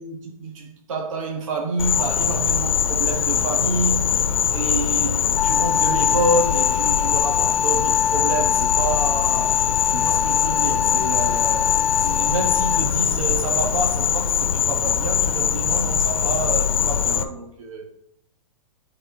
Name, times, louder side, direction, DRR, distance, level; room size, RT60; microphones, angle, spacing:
voice 1, 0.0-9.6 9.9-11.7 12.0-17.9, right 2 dB, 60° right, 1.6 m, -28 dB
Insect, 1.8-17.2, left 8 dB, 65° left, 1.1 m, -22 dB
Wind instrument woodwind instrument, 5.4-13.0, left 7 dB, 10° left, 0.8 m, -25 dB
sound 1, 8.2-14.9, left 1 dB, 40° right, 4.2 m, -41 dB
13.5 x 4.6 x 5.0 m
hypercardioid pair, 165°, 19 cm